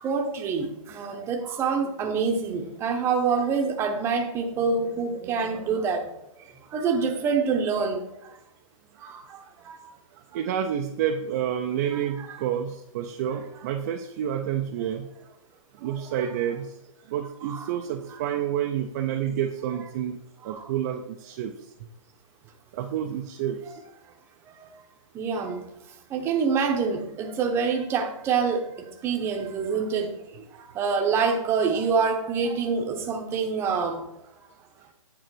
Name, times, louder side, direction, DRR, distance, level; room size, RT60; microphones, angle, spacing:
voice 1, 0.0-6.0 6.7-8.0 11.9-12.0 12.3-12.4 17.4-17.6 20.5-20.6 25.1-25.6 26.1-28.6 29.0-30.1 30.8-34.0, right 5 dB, 15° right, 3 dB, 0.8 m, -26 dB
voice 2, 10.3-15.1 15.8-16.7 17.1-20.2 20.4-21.5 22.7-23.6, right 9 dB, 30° right, 3 dB, 0.5 m, -29 dB
9.0 x 3.8 x 6.1 m, 0.86 s
hypercardioid pair, 160°, 18 cm